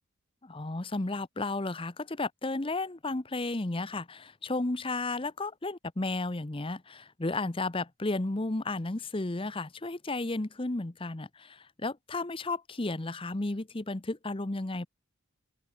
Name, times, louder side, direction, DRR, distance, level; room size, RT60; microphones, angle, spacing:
voice 1, 0.4-14.9, left 2 dB, 25° left, 0.8 m, -33 dB
open air
head